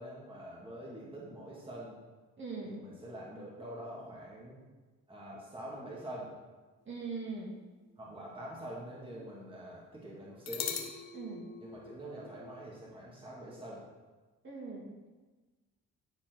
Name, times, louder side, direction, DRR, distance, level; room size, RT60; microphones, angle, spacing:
voice 1, 0.0-2.0 2.7-4.6 5.1-6.3 8.0-10.8 11.6-13.8, right 1 dB, 15° right, -5 dB, 2.1 m, -45 dB
voice 2, 2.4-2.7 6.9-7.5 11.1-11.5 14.4-14.9, right 4 dB, 40° right, -4 dB, 2.3 m, -40 dB
sound 1, 7.1-8.8 9.1-9.2 10.5-12.6, left 7 dB, 60° left, 1.1 m, -42 dB
10.0 x 4.5 x 4.5 m, 1.3 s
cardioid pair, 90°, 30 cm